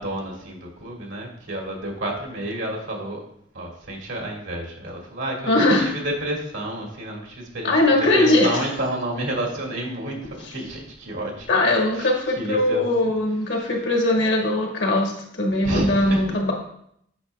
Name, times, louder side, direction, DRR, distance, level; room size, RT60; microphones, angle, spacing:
voice 1, 0.0-3.2 3.5-11.5 11.9-12.9 15.6-16.3, right 1 dB, 75° right, -1 dB, 1.8 m, -30 dB
voice 2, 5.5-6.0 7.6-8.5 11.5-16.5, left 1 dB, 65° left, 0 dB, 1.4 m, -20 dB
8.4 x 5.8 x 2.2 m, 0.72 s
head